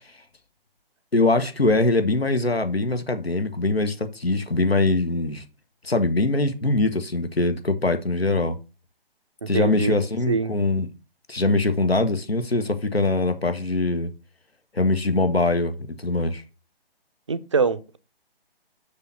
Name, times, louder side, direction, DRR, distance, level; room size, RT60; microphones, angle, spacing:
voice 1, 1.1-5.4 5.8-8.6 9.5-10.9 11.3-14.1 14.7-16.4, left 2 dB, 80° left, 1.5 m, -22 dB
voice 2, 9.4-10.0 10.3-10.5 17.3-18.0, right 5 dB, 30° right, 0.4 m, -24 dB
7.0 x 6.0 x 4.0 m
figure-of-eight pair, 145°, 30 cm